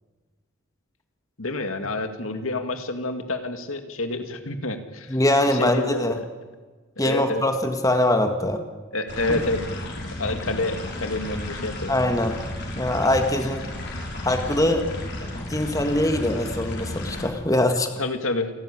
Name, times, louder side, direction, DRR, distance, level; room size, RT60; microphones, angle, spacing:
voice 1, 1.4-5.2 5.5-6.2 7.0-7.4 8.9-9.6 10.2-11.9 18.0-18.5, left 2 dB, 80° left, 7 dB, 2.3 m, -28 dB
voice 2, 5.1-6.2 7.0-8.6 9.3-9.4 11.9-12.4 12.7-13.6 14.2-14.9 15.2-17.9, left 1 dB, 15° left, 6 dB, 1.7 m, -23 dB
sound 1, 9.1-17.2, left 1 dB, 55° left, 5.6 m, -33 dB
29.0 x 12.5 x 10.0 m, 1.4 s
head